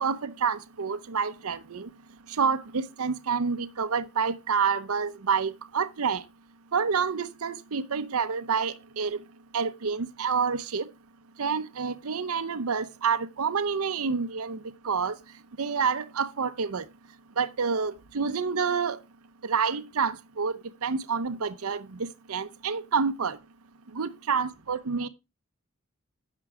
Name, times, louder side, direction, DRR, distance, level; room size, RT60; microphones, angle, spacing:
voice 1, 0.0-1.9 2.4-6.2 6.7-9.2 9.5-10.9 11.4-14.6 14.8-15.2 15.6-16.8 17.4-19.0 19.4-23.4 23.9-25.1, right 5 dB, 85° right, 0.7 m, -28 dB
11.0 x 6.7 x 4.7 m
head